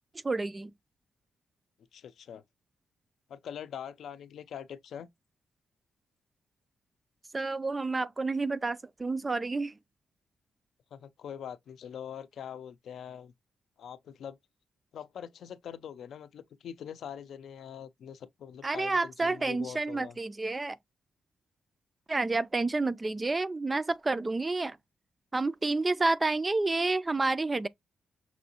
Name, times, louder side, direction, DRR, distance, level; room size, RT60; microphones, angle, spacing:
voice 1, 0.2-0.7 7.3-9.8 18.6-20.8 22.1-24.8 25.3-27.7, right 3 dB, 25° right, 0.3 m, -29 dB
voice 2, 1.9-2.4 3.3-5.1 10.9-13.3 13.8-14.4 14.9-20.2, left 8 dB, 75° left, 0.5 m, -43 dB
6.0 x 2.6 x 2.8 m
cardioid pair, 90°, 0 cm